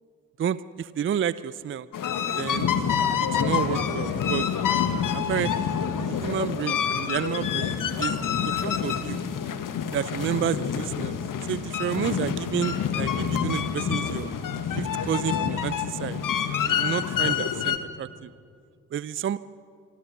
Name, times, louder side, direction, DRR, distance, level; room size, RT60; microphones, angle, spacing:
voice 1, 0.4-1.9 2.4-2.7 3.3-4.5 5.3-8.2 8.6-9.2 9.9-11.2 11.4-14.3 14.7-16.2 16.6-18.3 18.9-19.4, right 9 dB, 30° right, 17 dB, 0.6 m, -30 dB
sound 1, 1.9-17.8, left 7 dB, 50° left, 1.8 m, -27 dB
26.0 x 24.0 x 6.2 m, 2.4 s
figure-of-eight pair, 40°, 43 cm